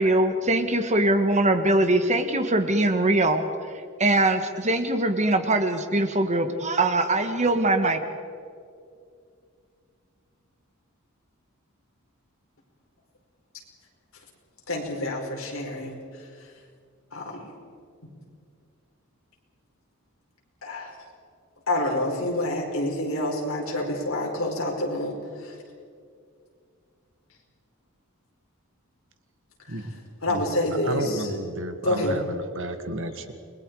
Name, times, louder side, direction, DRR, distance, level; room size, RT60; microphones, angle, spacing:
voice 1, 0.0-3.4 4.0-8.0, right 2 dB, 35° right, 8 dB, 1.5 m, -22 dB
voice 2, 14.7-15.9 17.1-17.5 20.6-20.9 21.7-25.1 25.4-25.5 30.2-31.3 31.8-32.2, left 1 dB, 70° left, -1 dB, 5.2 m, -27 dB
voice 3, 30.8-33.3, right 1 dB, 65° right, 8 dB, 1.8 m, -32 dB
29.5 x 22.0 x 4.9 m, 2.3 s
head